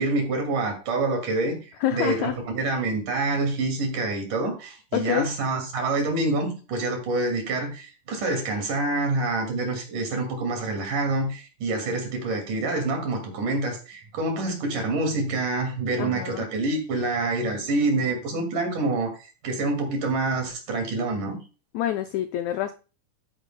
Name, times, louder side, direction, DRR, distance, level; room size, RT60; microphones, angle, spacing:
voice 1, 0.0-19.1 19.4-21.4, right 2 dB, 65° right, 4 dB, 3.8 m, -27 dB
voice 2, 1.8-2.4 4.9-5.3 16.0-16.4 21.7-22.7, left 12 dB, 85° left, 7 dB, 1.6 m, -27 dB
11.5 x 9.7 x 2.2 m, 0.34 s
omnidirectional pair, 3.9 m